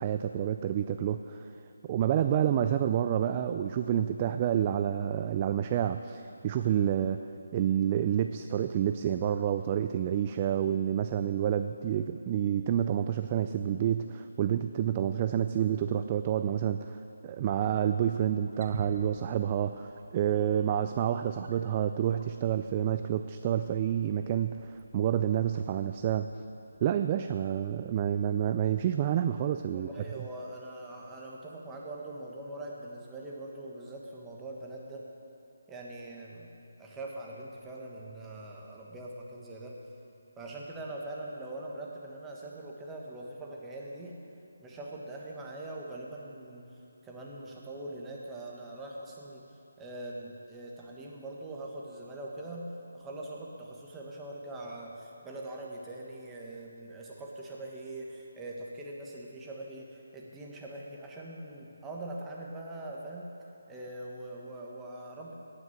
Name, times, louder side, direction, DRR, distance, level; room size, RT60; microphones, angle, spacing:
voice 1, 0.0-1.5 1.9-26.3 26.8-29.9 30.2-30.3, right 10 dB, 25° right, 9 dB, 0.3 m, -29 dB
Wild animals, 18.3-26.8, right 2 dB, 55° right, 1.4 m, -50 dB
voice 2, 20.3-20.7 29.7-35.1 35.7-36.5 36.8-39.8 40.4-44.2 44.6-46.7 47.0-63.3 63.7-65.3, right 1 dB, 10° right, -3 dB, 1.3 m, -42 dB
17.0 x 5.9 x 8.0 m, 2.9 s
figure-of-eight pair, 165°, 0 cm